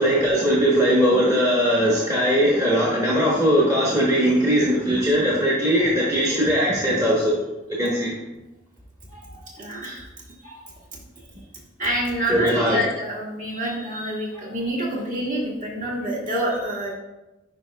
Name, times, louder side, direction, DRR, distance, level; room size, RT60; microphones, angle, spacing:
voice 1, 0.0-7.4 7.7-8.1 12.3-12.8, equal, 20° right, -5 dB, 1.0 m, -20 dB
voice 2, 9.1-10.0 10.4-10.6 11.8-16.9, equal, 45° right, -4 dB, 1.6 m, -27 dB
9.8 x 4.6 x 2.2 m, 1.0 s
head